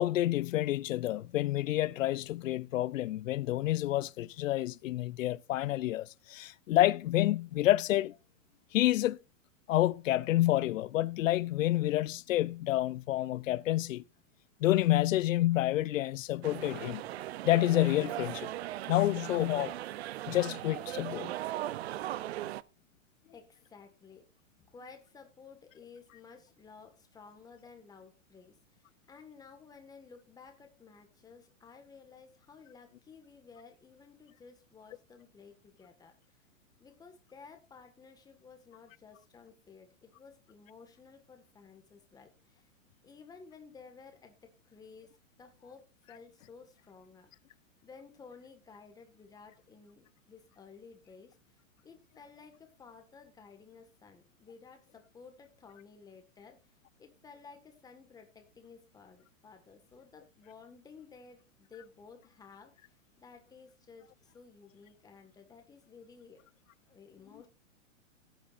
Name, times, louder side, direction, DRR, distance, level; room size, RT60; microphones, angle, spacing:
voice 1, 0.0-8.1 8.7-9.2 9.7-14.0 14.6-17.0 17.4-18.5 18.9-19.7 20.3-21.3, left 15 dB, 85° left, 0.5 m, -28 dB
sound 1, 16.4-22.6, right 14 dB, 55° right, 0.6 m, -38 dB
voice 2, 23.3-24.2 24.6-36.4 36.8-42.7 43.0-47.3 47.8-51.4 51.8-66.4 66.9-67.5, left 5 dB, 10° left, 1.6 m, -55 dB
15.5 x 8.9 x 2.5 m
hypercardioid pair, 155°, 38 cm